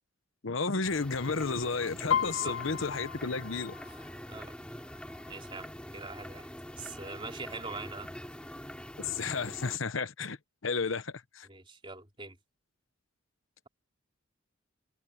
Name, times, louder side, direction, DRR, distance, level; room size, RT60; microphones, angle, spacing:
voice 1, 0.4-3.7 9.0-10.4 10.6-11.5, left 4 dB, 65° left, 1.0 m, -32 dB
sound 1, 0.8-9.8, equal, 5° left, 3.2 m, -45 dB
Piano, 2.1-5.7 6.1-6.5 6.8-7.5 8.1-8.2 8.4-9.4 9.8-9.9, left 8 dB, 85° left, 1.7 m, -35 dB
voice 2, 2.2-2.6 3.9-4.0 4.3-4.6 5.3-6.5 6.8-8.1 11.4-12.4, right 3 dB, 25° right, 3.7 m, -43 dB
open air
head